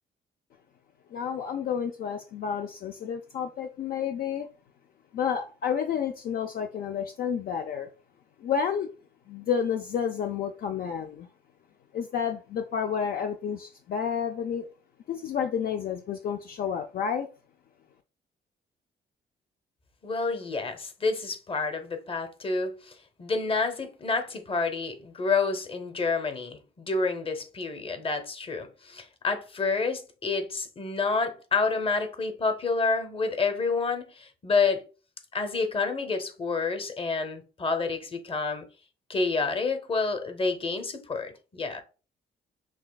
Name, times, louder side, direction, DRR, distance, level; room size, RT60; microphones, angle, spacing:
voice 1, 1.1-4.5 5.1-7.9 8.4-8.9 9.3-11.3 11.9-14.7 15.1-17.3, left 7 dB, 60° left, 0.4 m, -30 dB
voice 2, 20.0-22.9 23.2-34.8 35.3-38.7 39.1-41.8, left 4 dB, 30° left, 0.8 m, -29 dB
6.0 x 2.4 x 2.3 m
cardioid pair, 95°, 17 cm